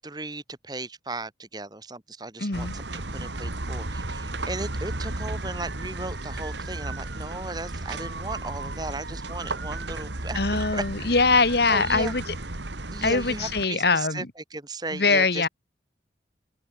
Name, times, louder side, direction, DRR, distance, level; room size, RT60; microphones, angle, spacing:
voice 1, 0.0-10.8 11.7-12.1 12.9-14.2 14.5-15.5, right 2 dB, 20° right, 1.7 m, -36 dB
voice 2, 2.4-2.7 10.3-12.3 13.0-14.3 14.9-15.5, left 4 dB, 60° left, 1.6 m, -23 dB
sound 1, 2.5-13.6, right 2 dB, 80° right, 2.5 m, -34 dB
head